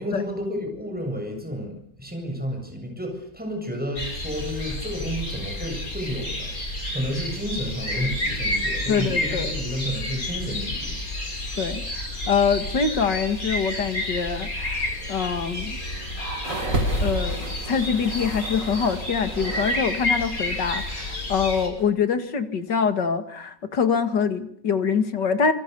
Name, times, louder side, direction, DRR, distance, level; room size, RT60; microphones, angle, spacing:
voice 1, 0.0-6.6 6.9-10.9, equal, 5° right, 3 dB, 7.7 m, -31 dB
sound 1, 4.0-21.7, left 1 dB, 50° left, 6.6 m, -30 dB
voice 2, 8.9-9.5 11.6-15.8 17.0-25.5, left 6 dB, 80° left, 9 dB, 2.6 m, -25 dB
sound 2, 16.4-19.9 20.1-21.0 21.8-21.9, right 2 dB, 80° right, 3.4 m, -33 dB
27.5 x 25.5 x 7.0 m, 0.65 s
omnidirectional pair, 1.9 m